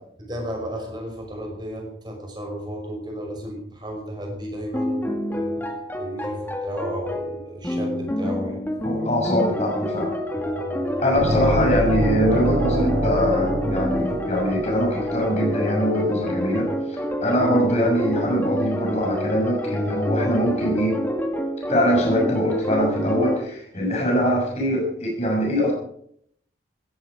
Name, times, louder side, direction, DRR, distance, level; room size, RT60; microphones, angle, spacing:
voice 1, 0.2-8.6 10.3-11.0, equal, 25° right, 1 dB, 5.6 m, -34 dB
sound 1, 4.7-23.4, equal, 10° left, 2.3 m, -27 dB
voice 2, 8.8-10.1 11.0-21.0 21.7-25.7, equal, 35° left, -1 dB, 6.3 m, -23 dB
sound 2, 11.2-15.0, right 1 dB, 70° right, 4.1 m, -25 dB
16.5 x 14.5 x 5.0 m, 0.67 s
head